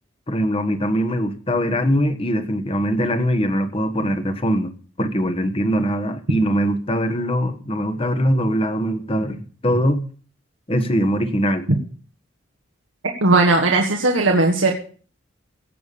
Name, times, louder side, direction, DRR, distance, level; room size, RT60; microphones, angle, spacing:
voice 1, 0.3-4.7 5.0-10.0 10.7-11.7, equal, 30° left, 1.3 m, -22 dB
voice 2, 13.2-14.7, right 2 dB, 85° right, 1.6 m, -17 dB
16.5 x 7.1 x 6.8 m
head